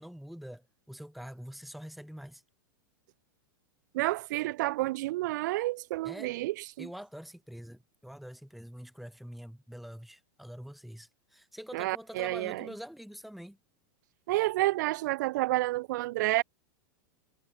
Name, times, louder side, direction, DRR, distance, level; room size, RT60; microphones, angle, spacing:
voice 1, 0.0-2.4 6.0-6.3 6.8-13.6, equal, ahead, 2.3 m, -45 dB
voice 2, 3.9-6.9 11.7-12.7 14.3-16.4, right 18 dB, 60° right, 0.6 m, -30 dB
supercardioid pair, 155°, 11 cm